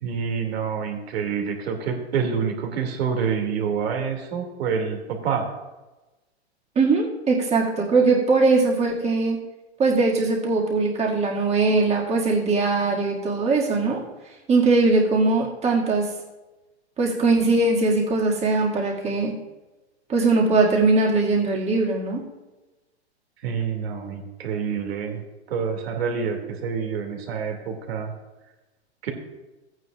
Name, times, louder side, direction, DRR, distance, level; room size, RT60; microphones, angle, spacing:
voice 1, 0.0-5.5 23.4-25.2 25.5-28.1 29.0-29.1, right 6 dB, 65° right, 3 dB, 2.2 m, -27 dB
voice 2, 6.8-9.4 9.8-14.0 14.5-16.1 17.0-19.3 20.1-22.3, right 3 dB, 20° right, -2 dB, 1.9 m, -20 dB
15.0 x 9.1 x 2.3 m, 1.1 s
hypercardioid pair, 120°, 33 cm